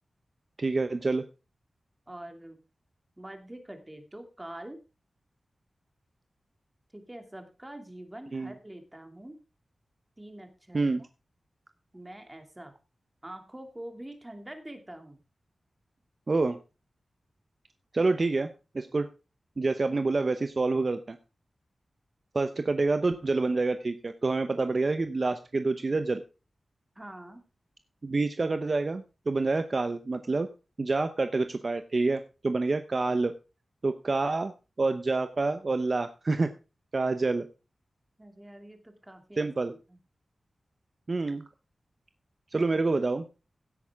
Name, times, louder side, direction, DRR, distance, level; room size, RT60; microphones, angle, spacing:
voice 1, 0.6-1.3 8.3-8.5 10.7-11.1 16.3-16.6 17.9-19.1 19.6-21.2 22.3-26.2 28.0-30.5 30.8-33.4 33.8-34.5 34.8-36.5 36.9-37.5 39.4-39.7 41.1-41.5 42.5-43.3, right 3 dB, 40° right, 9 dB, 0.8 m, -27 dB
voice 2, 2.1-2.6 3.2-4.8 6.9-9.3 10.2-10.8 11.9-12.7 13.2-15.2 27.0-27.4 38.2-39.5 39.9-40.0, right 1 dB, 15° right, 6 dB, 2.5 m, -45 dB
16.5 x 8.5 x 3.6 m, 0.30 s
wide cardioid pair, 110°, 0 cm